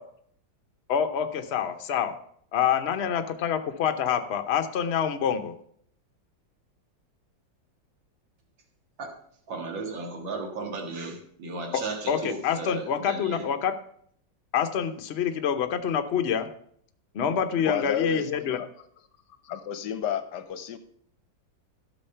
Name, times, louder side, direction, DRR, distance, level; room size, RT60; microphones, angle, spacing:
voice 1, 0.9-2.1 2.5-5.5 11.7-11.8 12.1-13.7 14.5-16.5 17.1-18.6, left 8 dB, 55° left, 8 dB, 0.7 m, -26 dB
voice 2, 9.5-13.5, right 3 dB, 80° right, 2 dB, 2.4 m, -35 dB
voice 3, 17.6-18.7 19.4-20.8, left 8 dB, 70° left, 11 dB, 1.2 m, -31 dB
12.0 x 6.4 x 5.6 m, 0.65 s
omnidirectional pair, 2.0 m